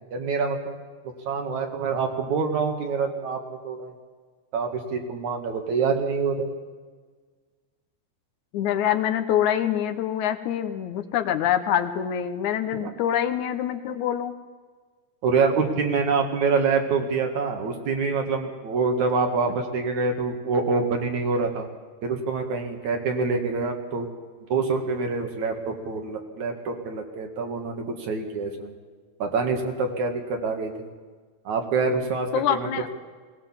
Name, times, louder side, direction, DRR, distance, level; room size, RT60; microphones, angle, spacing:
voice 1, 0.1-0.8 1.3-3.9 4.5-6.5 12.7-12.9 15.2-21.7 22.0-24.1 24.5-28.7 29.2-30.9 31.4-32.7, right 4 dB, 65° right, 3 dB, 3.3 m, -26 dB
voice 2, 8.5-14.3 32.3-32.9, left 10 dB, 70° left, 8 dB, 2.2 m, -25 dB
20.0 x 19.0 x 7.4 m, 1.5 s
omnidirectional pair, 3.6 m